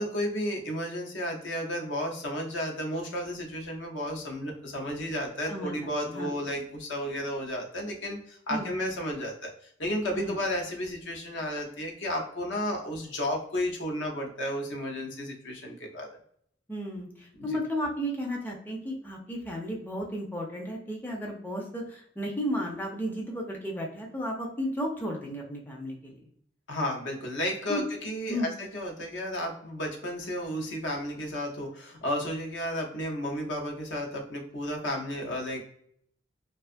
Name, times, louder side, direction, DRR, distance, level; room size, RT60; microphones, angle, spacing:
voice 1, 0.0-9.5 9.8-16.1 17.4-17.6 26.7-35.6, equal, 70° left, 1 dB, 0.7 m, -33 dB
voice 2, 16.7-26.2 27.7-27.8 28.3-28.5, equal, 10° left, -1 dB, 0.4 m, -33 dB
2.4 x 2.4 x 2.5 m, 0.67 s
head